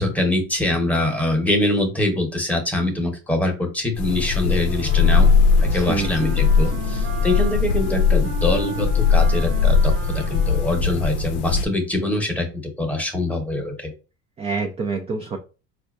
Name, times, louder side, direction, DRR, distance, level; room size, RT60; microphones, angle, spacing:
voice 1, 0.0-5.3 5.6-13.9, left 2 dB, 5° left, 2 dB, 0.8 m, -24 dB
sound 1, 4.0-11.7, left 5 dB, 90° left, 0.5 m, -19 dB
Wind instrument woodwind instrument, 4.7-11.4, right 8 dB, 55° right, 0.8 m, -36 dB
voice 2, 5.7-6.8 14.4-15.4, right 4 dB, 20° right, 3 dB, 0.3 m, -28 dB
4.2 x 2.4 x 2.3 m, 0.33 s
supercardioid pair, 95°, 37 cm